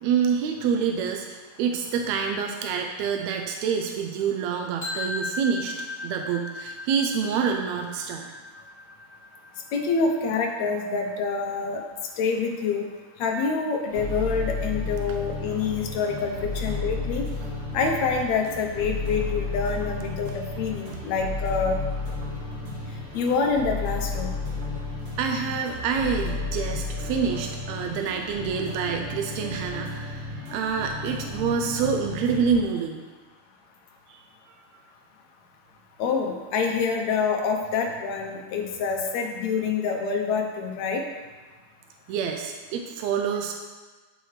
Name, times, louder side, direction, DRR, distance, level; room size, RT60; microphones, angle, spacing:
voice 1, 0.0-8.3 25.2-33.0 34.1-34.3 42.1-43.5, right 6 dB, 80° right, 3 dB, 1.8 m, -27 dB
sound 1, 4.8-10.7, left 3 dB, 30° left, 1.6 m, -37 dB
voice 2, 9.7-11.8 12.2-12.9 13.2-17.3 17.7-21.8 23.1-24.4 36.0-41.0, left 5 dB, 75° left, 2 dB, 2.0 m, -26 dB
sound 2, 13.9-32.6, left 3 dB, 55° right, 2.1 m, -33 dB
9.2 x 6.3 x 3.2 m, 1.3 s
omnidirectional pair, 3.3 m